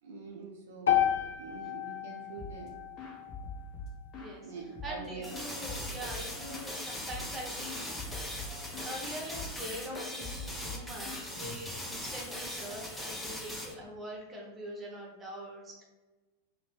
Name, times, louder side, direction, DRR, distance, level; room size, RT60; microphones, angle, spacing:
voice 1, 0.0-1.0 1.4-2.8 4.4-5.5, right 4 dB, 60° right, 0 dB, 0.4 m, -44 dB
sound 1, 0.9-5.0, left 10 dB, 65° left, 0.3 m, -33 dB
sound 2, 2.4-2.7 3.0-4.4 4.7-6.7 7.1-7.4 7.6-9.0 9.3-9.6 9.9-12.0, left 2 dB, 35° left, 0.8 m, -44 dB
voice 2, 4.8-8.2 8.8-15.8, right 1 dB, 20° right, -1 dB, 0.9 m, -43 dB
sound 3, 5.2-13.7, left 1 dB, 5° left, 0.5 m, -40 dB
2.9 x 2.1 x 3.2 m, 1.2 s
figure-of-eight pair, 90°, 0 cm